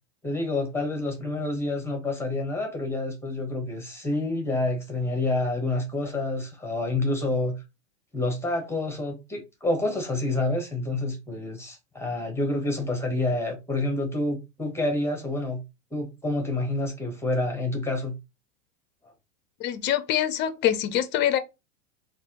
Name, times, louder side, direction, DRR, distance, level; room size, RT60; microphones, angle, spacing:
voice 1, 0.2-7.6 8.1-15.6 15.9-18.1 19.0-19.1, left 2 dB, 5° left, 1.0 m, -28 dB
voice 2, 19.6-21.4, left 11 dB, 30° left, 0.5 m, -24 dB
3.3 x 2.6 x 2.9 m
hypercardioid pair, 105°, 40 cm